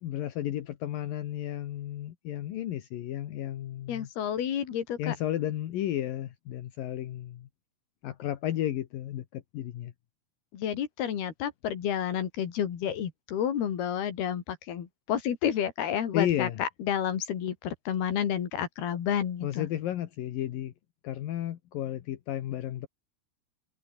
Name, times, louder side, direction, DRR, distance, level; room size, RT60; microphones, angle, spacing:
voice 1, 0.0-4.1 5.0-7.5 8.0-9.9 16.1-16.6 19.4-20.7 21.0-22.9, left 12 dB, 70° left, 3.0 m, -33 dB
voice 2, 3.9-5.1 10.5-19.7, left 9 dB, 90° left, 4.6 m, -30 dB
omnidirectional pair, 4.4 m